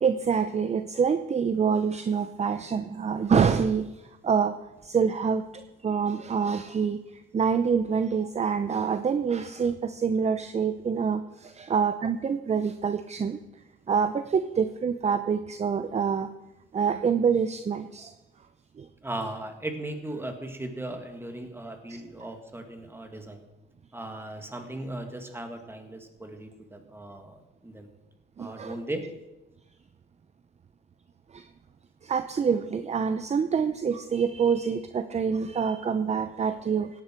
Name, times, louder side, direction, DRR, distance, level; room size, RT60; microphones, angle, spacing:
voice 1, 0.0-3.8 4.2-4.5 4.9-5.4 5.8-7.0 7.3-11.2 11.6-13.4 13.9-16.3 16.7-18.1 28.4-28.8 32.1-36.9, right 6 dB, 35° right, 10 dB, 0.7 m, -26 dB
voice 2, 19.0-23.4 23.9-27.9 28.4-29.0, right 1 dB, 10° right, 5 dB, 2.1 m, -37 dB
17.0 x 10.5 x 4.6 m, 1.0 s
cardioid pair, 90°, 20 cm